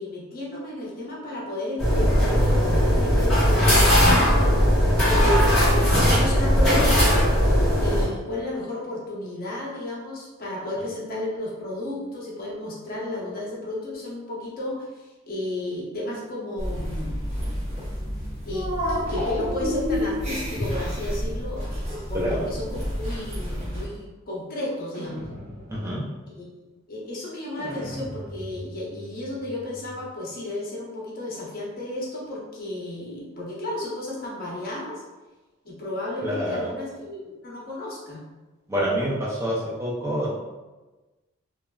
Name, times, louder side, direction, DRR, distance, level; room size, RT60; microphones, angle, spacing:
voice 1, 0.0-4.1 5.0-7.2 7.8-17.1 18.5-21.6 22.1-25.2 26.4-26.5 26.9-35.0 35.6-38.2, left 1 dB, 45° left, -4 dB, 0.8 m, -33 dB
sound 1, 1.8-8.1, equal, 5° left, 1.0 m, -19 dB
sound 2, 16.6-23.9, equal, 30° right, 0.9 m, -29 dB
sound 3, 19.1-20.4 22.3-23.4 24.9-26.0 27.6-30.2, equal, 85° right, 1.0 m, -40 dB
voice 2, 25.7-26.0 36.2-36.7 38.7-40.3, equal, 10° right, -6 dB, 0.4 m, -27 dB
3.1 x 2.3 x 2.2 m, 1.2 s
head